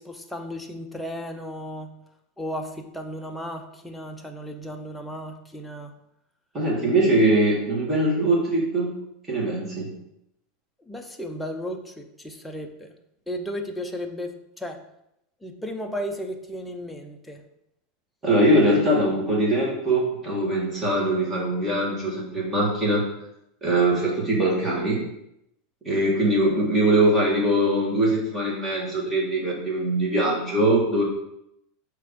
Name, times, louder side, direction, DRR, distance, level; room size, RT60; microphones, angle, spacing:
voice 1, 0.0-1.9 2.4-5.9 10.9-12.9 13.3-14.8 15.4-17.4 26.2-26.3, equal, 5° left, 3 dB, 0.5 m, -34 dB
voice 2, 6.5-8.9 9.3-9.9 18.2-23.0 23.6-25.0 25.8-31.0, right 1 dB, 15° right, -3 dB, 1.5 m, -22 dB
5.4 x 3.3 x 5.1 m, 0.81 s
supercardioid pair, 170°, 0 cm